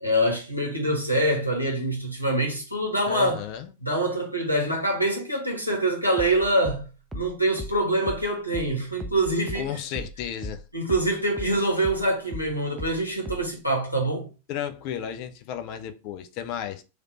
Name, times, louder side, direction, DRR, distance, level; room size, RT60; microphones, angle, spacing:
voice 1, 0.0-3.4 3.8-9.7 10.7-14.3, right 1 dB, 85° left, 1.2 m, -25 dB
voice 2, 3.1-3.7 9.6-10.6 14.5-16.8, left 9 dB, 45° left, 0.5 m, -33 dB
sound 1, 6.2-11.1 11.4-13.6, right 1 dB, 10° right, 0.5 m, -37 dB
3.2 x 2.5 x 4.2 m
figure-of-eight pair, 90°, 0 cm